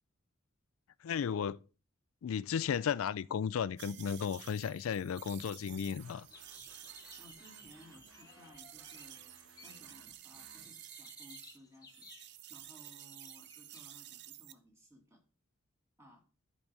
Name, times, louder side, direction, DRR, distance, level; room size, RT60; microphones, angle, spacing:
voice 1, 1.0-1.6 2.2-6.3, left 7 dB, 70° left, 0.3 m, -34 dB
sound 1, 3.8-11.6 11.9-14.5, right 13 dB, 55° right, 0.5 m, -52 dB
sound 2, 6.0-13.8, left 4 dB, 20° left, 1.0 m, -59 dB
sound 3, 6.0-11.2, right 3 dB, 70° right, 2.0 m, -62 dB
voice 2, 7.2-9.2 9.6-12.1 12.5-15.2 16.0-16.2, equal, 15° right, 2.3 m, -59 dB
10.5 x 4.1 x 4.7 m
head